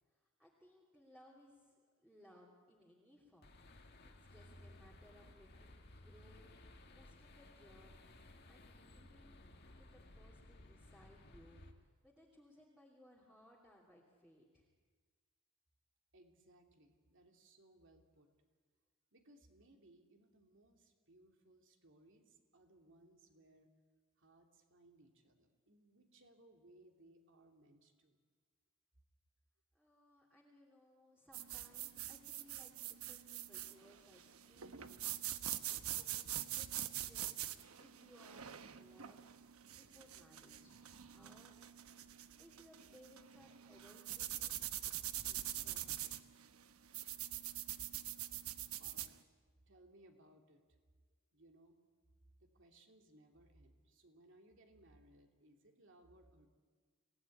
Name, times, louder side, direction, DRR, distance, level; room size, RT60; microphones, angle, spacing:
voice 1, 0.1-3.5 4.0-6.5 6.9-9.4 9.8-14.7 29.7-40.8 41.1-41.6 42.4-44.5 44.9-45.0 45.2-46.2, equal, 5° right, -4 dB, 2.9 m, -65 dB
sound 1, 3.4-11.7, left 1 dB, 50° left, 1.9 m, -59 dB
voice 2, 16.1-18.3 19.1-23.7 24.2-28.2 48.4-48.5 48.8-49.2 49.7-50.6 51.3-51.8 52.4-56.5, right 1 dB, 60° right, 3 dB, 3.0 m, -65 dB
sound 2, 31.3-49.1, right 12 dB, 75° right, 1.1 m, -44 dB
26.5 x 17.5 x 9.8 m, 1.5 s
head